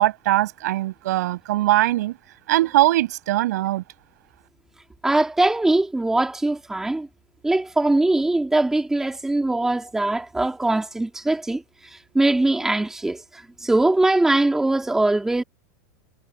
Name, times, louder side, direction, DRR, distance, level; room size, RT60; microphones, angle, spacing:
voice 1, 0.0-2.2 2.5-3.8, right 15 dB, 70° right, 6.8 m, -21 dB
voice 2, 5.0-7.1 7.4-15.4, right 2 dB, 5° right, 3.0 m, -21 dB
supercardioid pair, 160°, 10 cm